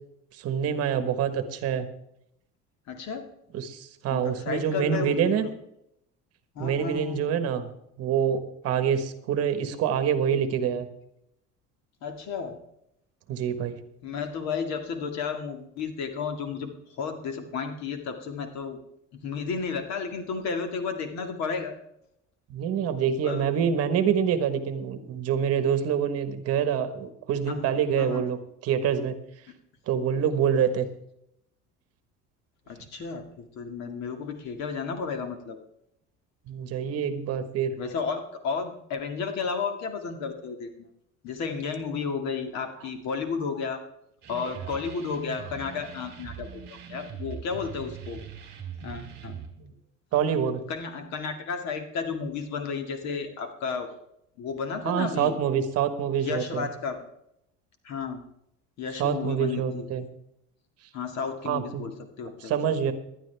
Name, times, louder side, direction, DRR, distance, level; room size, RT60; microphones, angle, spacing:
voice 1, 0.4-1.9 3.5-5.5 6.6-7.7 8.0-10.9 13.3-13.8 22.5-28.4 28.6-29.2 29.9-30.9 36.5-37.7 49.6-49.7 50.1-50.6 54.8-56.7 59.0-60.0 61.4-61.8 62.4-62.9, right 8 dB, 55° right, 10 dB, 1.4 m, -26 dB
voice 2, 2.9-3.3 4.1-5.5 6.6-7.2 12.0-12.6 14.0-18.8 19.2-21.8 23.2-23.4 27.5-28.2 32.7-35.6 37.8-40.7 41.2-43.8 44.3-48.2 48.8-49.4 50.7-53.9 54.4-55.4 56.2-57.0 57.8-58.2 58.8-59.9 60.9-61.9 62.2-62.6, left 5 dB, 60° left, 6 dB, 2.1 m, -33 dB
sound 1, 44.2-49.5, right 8 dB, 35° right, 3.1 m, -41 dB
19.5 x 12.0 x 3.4 m, 0.78 s
cardioid pair, 155°, 30 cm